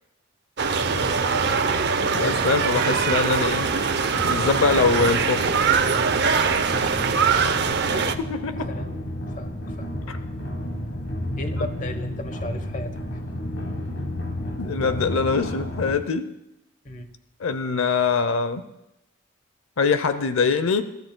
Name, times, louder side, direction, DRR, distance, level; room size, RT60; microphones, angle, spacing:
sound 1, 0.6-8.2, right 5 dB, 55° right, 0.6 m, -22 dB
sound 2, 0.7-16.0, left 1 dB, 55° left, 1.3 m, -32 dB
voice 1, 1.0-1.8 7.4-7.7 8.7-9.0 9.3-9.9 10.2-10.3 11.4-13.2 16.8-17.1, left 1 dB, 40° left, 8 dB, 1.0 m, -36 dB
voice 2, 2.1-3.7 4.2-5.5 8.2-8.7 10.1-10.2 14.6-16.3 17.4-18.6 19.8-20.8, left 4 dB, 80° left, 11 dB, 0.6 m, -23 dB
26.5 x 13.0 x 2.2 m, 0.89 s
head